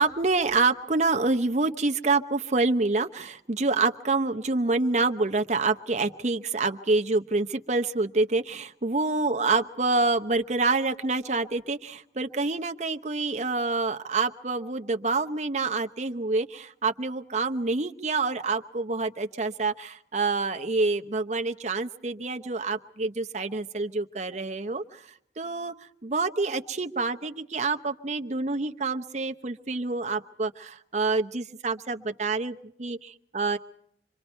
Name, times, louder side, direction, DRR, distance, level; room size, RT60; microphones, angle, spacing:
voice 1, 0.0-25.1 25.4-25.7 26.0-33.6, right 3 dB, 40° right, 6 dB, 0.9 m, -27 dB
27.0 x 24.0 x 4.5 m, 0.69 s
head